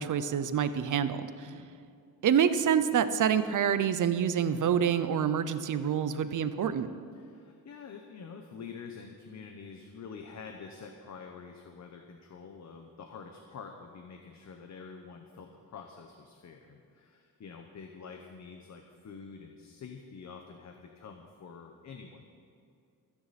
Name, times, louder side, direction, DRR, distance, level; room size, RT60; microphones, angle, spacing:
voice 1, 0.0-1.5 2.2-6.9, right 8 dB, 55° right, 12 dB, 0.7 m, -27 dB
voice 2, 7.1-22.3, left 5 dB, 50° left, 4 dB, 1.0 m, -47 dB
25.0 x 9.8 x 4.2 m, 2.4 s
wide cardioid pair, 165°, 37 cm